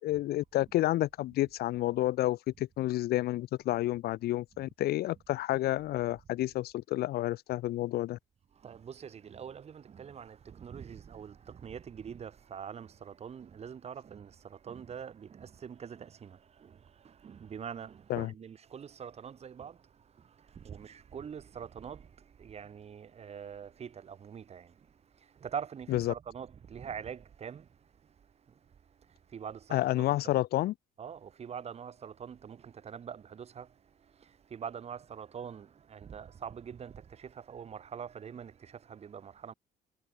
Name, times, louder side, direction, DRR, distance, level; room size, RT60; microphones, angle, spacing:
voice 1, 0.0-8.2 18.1-18.3 25.9-26.1 29.7-30.7, left 15 dB, 70° left, 0.7 m, -30 dB
voice 2, 8.5-30.4 31.0-39.5, right 7 dB, 40° right, 1.5 m, -44 dB
cardioid pair, 110°, 17 cm